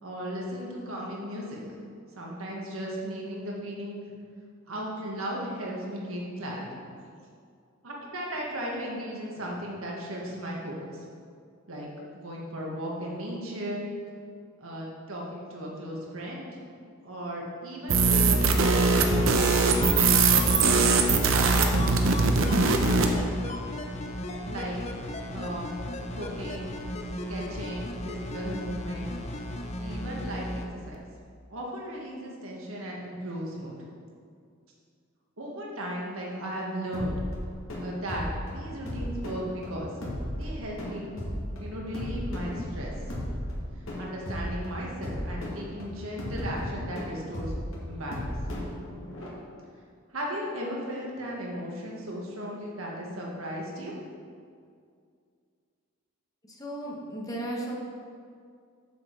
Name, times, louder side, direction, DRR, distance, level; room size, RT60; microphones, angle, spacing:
voice 1, 0.0-1.6 2.2-4.1 4.7-6.8 7.8-11.0 11.7-11.9 12.1-13.9 14.6-16.5 17.0-20.0 22.9-23.2 24.4-24.8 25.3-25.8 26.2-26.7 27.3-29.1 29.8-30.6 30.9-31.0 31.5-33.9 35.4-37.2 37.8-39.9 40.3-41.1 41.6-42.9 44.0-47.5 47.8-48.3 50.1-53.9, equal, 90° right, -3 dB, 1.8 m, -36 dB
sound 1, 17.9-23.1, right 4 dB, 70° right, 0.8 m, -21 dB
sound 2, 18.1-30.6 30.9-31.0, left 1 dB, 35° left, 0.7 m, -36 dB
sound 3, 36.9-49.3, equal, 75° left, 2.1 m, -35 dB
voice 2, 56.6-57.8, right 1 dB, 15° left, -2 dB, 1.2 m, -34 dB
7.2 x 7.1 x 4.7 m, 2.2 s
head